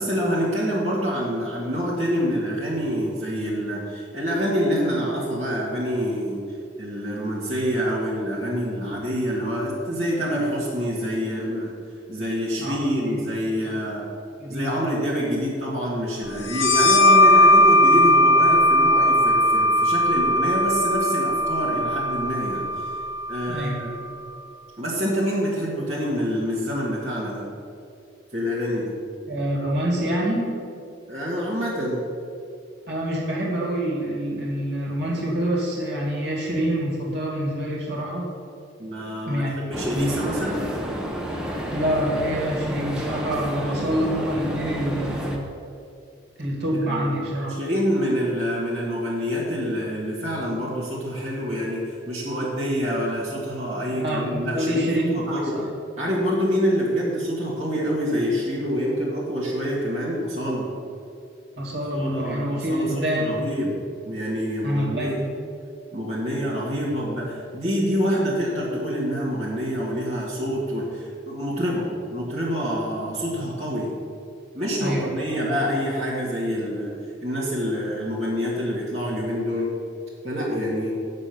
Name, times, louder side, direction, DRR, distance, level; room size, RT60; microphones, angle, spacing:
voice 1, 0.0-6.4 6.8-11.7 12.1-14.0 14.5-22.7 23.3-23.9 24.8-27.5 28.3-28.9 31.1-32.0 38.8-40.7 43.8-44.1 46.9-47.1 47.5-55.5 56.0-60.7 61.9-63.7 64.0-65.2 65.9-73.9 74.5-79.7 80.2-80.9, equal, 35° right, -8 dB, 1.8 m, -26 dB
voice 2, 12.6-13.2 14.4-15.0 23.5-23.8 29.3-30.5 32.9-38.3 39.3-40.3 41.7-45.5 46.4-47.6 53.9-55.7 61.6-63.4 64.6-65.3 74.8-75.1, equal, 55° right, -3 dB, 2.2 m, -26 dB
sound 1, 16.5-23.8, left 1 dB, 90° left, 0.8 m, -18 dB
sound 2, 39.7-45.4, equal, 5° right, 0.8 m, -30 dB
8.7 x 6.7 x 5.9 m, 2.4 s
head